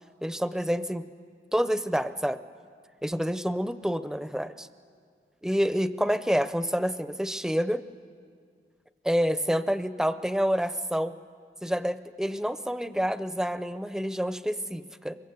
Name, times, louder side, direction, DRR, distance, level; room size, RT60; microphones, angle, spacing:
voice 1, 0.2-1.1 1.5-2.4 3.0-4.7 5.4-7.8 9.0-11.2 11.6-15.2, equal, 5° right, 13 dB, 0.5 m, -28 dB
24.5 x 22.0 x 8.1 m, 2.1 s
head